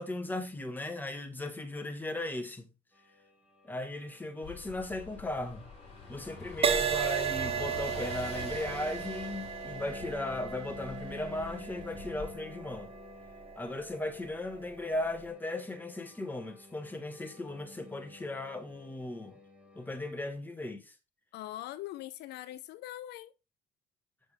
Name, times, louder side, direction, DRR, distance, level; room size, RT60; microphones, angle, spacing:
voice 1, 0.0-2.7 3.6-5.7 6.1-12.9 13.6-19.4 19.7-20.9, left 2 dB, 10° left, 1.4 m, -37 dB
sound 1, 2.9-20.3, left 3 dB, 5° right, 1.8 m, -51 dB
Car passing by / Engine, 4.4-12.3, left 4 dB, 40° left, 4.4 m, -46 dB
Crash cymbal, 6.6-14.3 14.9-15.2, right 7 dB, 35° right, 1.1 m, -35 dB
voice 2, 21.3-23.3, left 14 dB, 80° left, 0.5 m, -42 dB
6.9 x 6.3 x 3.4 m
cardioid pair, 110°, 17 cm